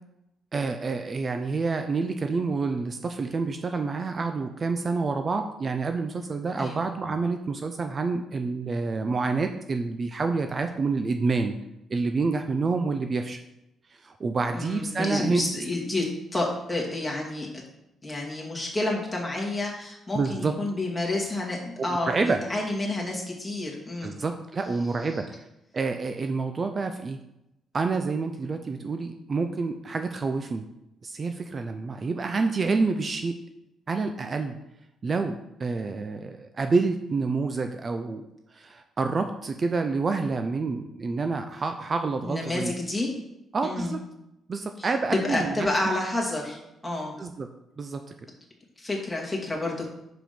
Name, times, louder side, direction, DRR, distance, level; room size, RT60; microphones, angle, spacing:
voice 1, 0.5-11.6 11.9-13.4 13.9-15.5 20.1-20.5 22.1-22.4 24.0-25.3 25.7-27.2 27.7-30.7 31.0-33.4 33.9-34.6 35.0-38.3 38.5-42.7 43.5-44.0 44.5-45.7 47.2-47.5 47.8-48.0, right 4 dB, 40° right, 7 dB, 0.5 m, -28 dB
voice 2, 14.5-17.5 18.0-24.2 42.2-43.1 43.6-43.9 44.8-46.6 46.8-47.2 48.8-49.9, left 2 dB, 15° left, -2 dB, 2.2 m, -29 dB
5.9 x 4.9 x 5.2 m, 0.87 s
cardioid pair, 90°, 0 cm